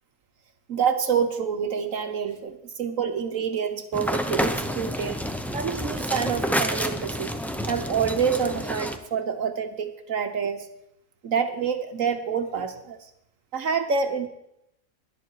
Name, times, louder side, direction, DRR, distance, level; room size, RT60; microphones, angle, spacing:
voice 1, 0.7-5.2 5.5-7.3 7.7-10.7 11.2-13.1 13.5-14.3, right 6 dB, 65° right, 7 dB, 1.3 m, -27 dB
sound 1, 3.9-9.0, equal, ahead, 0.6 m, -29 dB
18.0 x 11.0 x 4.7 m, 0.83 s
omnidirectional pair, 1.5 m